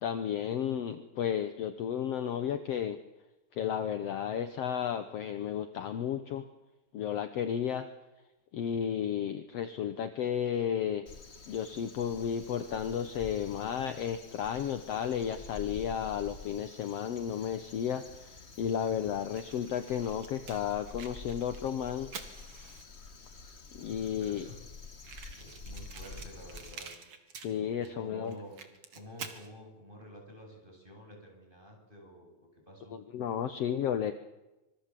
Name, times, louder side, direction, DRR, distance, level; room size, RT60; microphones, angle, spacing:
voice 1, 0.0-3.0 3.6-6.5 6.9-7.9 8.5-11.1 11.5-22.1 23.7-24.5 27.4-28.4 33.1-34.1, left 8 dB, 60° left, 9 dB, 2.0 m, -33 dB
Crow, 11.1-26.7, left 3 dB, 35° left, 1.1 m, -49 dB
Fire, 19.3-23.1 23.8-23.9 24.1-24.2 24.4-24.5 25.0-27.9 28.3-29.5, right 6 dB, 50° right, 3.0 m, -48 dB
voice 2, 23.9-24.6 25.3-26.9 27.7-28.6 28.9-33.0, equal, 15° right, 1 dB, 8.2 m, -50 dB
26.0 x 24.0 x 7.7 m, 1.0 s
omnidirectional pair, 3.5 m